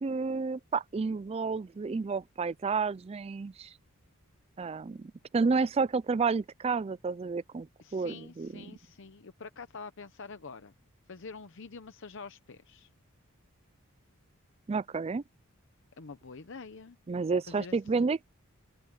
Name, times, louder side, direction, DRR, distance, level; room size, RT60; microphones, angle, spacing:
voice 1, 0.0-3.7 4.6-7.7 7.9-8.6 14.7-15.2 17.1-18.2, right 4 dB, 30° right, 0.3 m, -30 dB
voice 2, 7.8-10.7 11.1-12.9 16.0-17.0 17.5-18.1, left 4 dB, 60° left, 0.8 m, -46 dB
open air
head